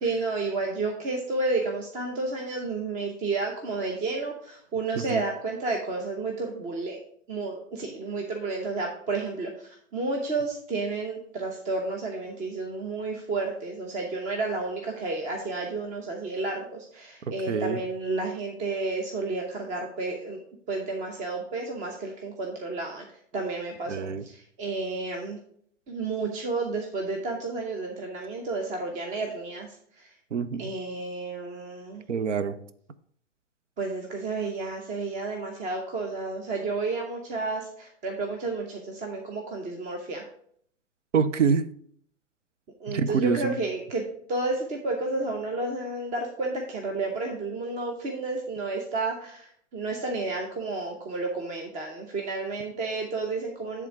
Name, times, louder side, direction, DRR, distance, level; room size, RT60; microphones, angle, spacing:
voice 1, 0.0-7.0 7.3-20.4 20.7-23.0 23.3-25.4 25.9-29.7 30.0-30.1 30.6-32.0 33.8-40.3 42.8-44.0 44.3-53.9, right 3 dB, 20° right, 0.8 m, -31 dB
voice 2, 17.5-17.8 23.9-24.2 30.3-30.7 32.1-32.6 41.1-41.7 42.9-43.6, right 6 dB, 75° right, 0.7 m, -26 dB
10.0 x 3.6 x 4.7 m
figure-of-eight pair, 115°, 37 cm